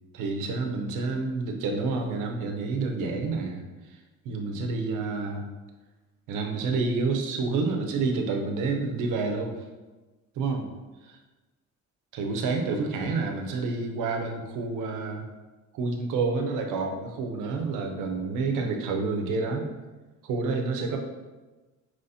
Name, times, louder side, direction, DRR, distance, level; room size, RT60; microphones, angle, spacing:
voice 1, 0.1-3.6 4.2-5.5 6.3-9.5 10.4-10.6 12.1-15.3 15.7-19.7 20.2-21.0, right 4 dB, 90° right, 3 dB, 0.6 m, -28 dB
5.6 x 3.0 x 2.7 m, 1.2 s
cardioid pair, 90°, 30 cm